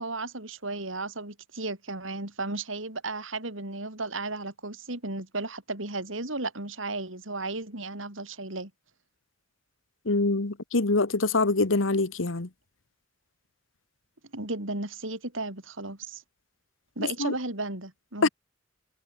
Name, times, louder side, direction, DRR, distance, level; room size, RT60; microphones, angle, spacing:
voice 1, 0.0-8.7 14.3-16.2 17.0-18.3, right 2 dB, 85° right, 5.8 m, -34 dB
voice 2, 10.1-12.5 17.2-17.3 18.2-18.3, left 3 dB, 85° left, 1.4 m, -24 dB
head